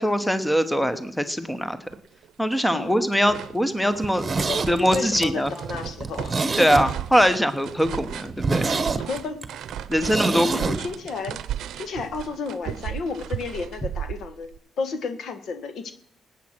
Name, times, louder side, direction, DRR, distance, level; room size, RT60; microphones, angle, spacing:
voice 1, 0.0-1.8 2.4-4.2 4.7-5.5 6.6-8.7 9.9-10.8, equal, 5° left, 12 dB, 1.0 m, -22 dB
sound 1, 1.5-1.6 1.9-2.6 2.9-14.6, right 11 dB, 75° right, 0.7 m, -36 dB
voice 2, 2.7-3.1 4.4-6.3 9.0-9.4 10.5-11.4 11.8-14.5 14.8-15.9, left 4 dB, 65° left, 9 dB, 1.6 m, -32 dB
Zipper (clothing), 4.0-7.3 7.6-7.7 8.0-8.1 8.4-10.8 11.1-11.2, right 4 dB, 30° right, 1.2 m, -27 dB
19.0 x 8.5 x 6.0 m, 0.63 s
cardioid pair, 90°, 0 cm